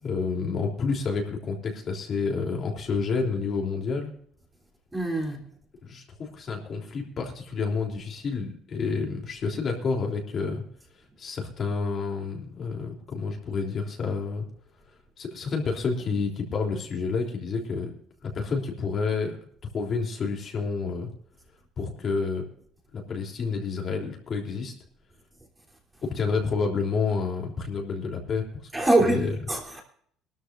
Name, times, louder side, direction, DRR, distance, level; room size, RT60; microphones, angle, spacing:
voice 1, 0.0-4.1 5.8-10.6 11.2-14.5 15.2-17.9 18.2-19.4 19.7-21.1 21.8-22.4 22.9-24.7 26.0-29.3, left 4 dB, 40° left, 3.4 m, -29 dB
voice 2, 4.9-5.5 28.7-29.8, right 2 dB, 10° right, 3.3 m, -24 dB
22.0 x 13.5 x 2.6 m
cardioid pair, 135°, 0 cm